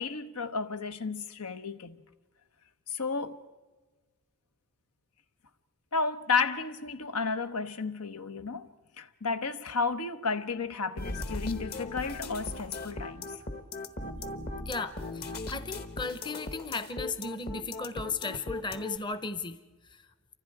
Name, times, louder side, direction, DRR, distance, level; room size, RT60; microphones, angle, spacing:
voice 1, 0.0-2.0 2.9-3.4 5.9-8.7 9.0-13.3, left 4 dB, 90° left, 1.1 m, -32 dB
sound 1, 11.0-19.0, left 2 dB, 45° left, 1.2 m, -38 dB
voice 2, 14.7-19.6, left 4 dB, 20° left, 0.7 m, -36 dB
28.5 x 25.5 x 4.8 m
head